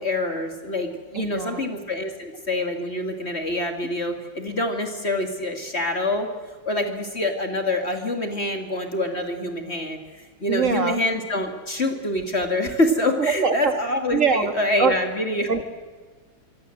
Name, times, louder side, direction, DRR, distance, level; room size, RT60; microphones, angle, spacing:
voice 1, 0.0-6.3 6.6-10.0 10.4-15.5, left 1 dB, 30° left, 5 dB, 2.6 m, -26 dB
voice 2, 1.2-1.6 10.5-11.0 13.2-13.7 14.1-14.5 14.8-14.9 15.5-15.6, right 6 dB, 40° right, 8 dB, 2.1 m, -22 dB
25.5 x 24.5 x 7.8 m, 1.4 s
omnidirectional pair, 2.2 m